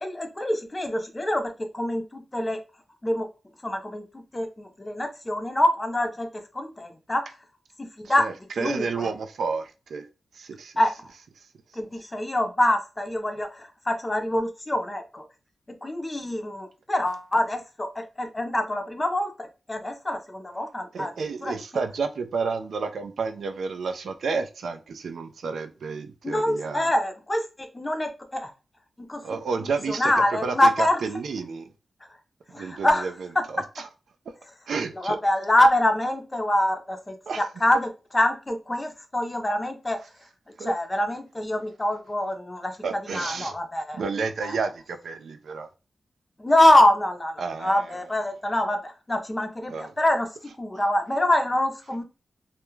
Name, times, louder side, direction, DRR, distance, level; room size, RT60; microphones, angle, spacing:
voice 1, 0.0-2.6 3.0-3.3 3.6-7.4 7.8-8.3 8.6-9.1 10.8-11.1 11.7-15.2 15.7-21.1 21.4-21.5 26.2-28.5 29.0-29.2 29.6-31.0 32.5-33.1 33.4-33.7 35.0-40.0 40.6-42.8 43.1-44.0 44.4-44.5 46.4-52.0, left 1 dB, 20° left, 0.5 m, -25 dB
voice 2, 8.0-10.1 10.3-10.7 20.9-26.9 29.2-30.1 30.4-31.7 32.6-33.9 34.7-35.2 37.3-37.4 40.6-40.7 42.8-43.5 43.9-45.7 47.4-48.0 49.7-49.9, right 5 dB, 85° right, 0.3 m, -31 dB
2.3 x 2.1 x 3.0 m
wide cardioid pair, 130°, 0 cm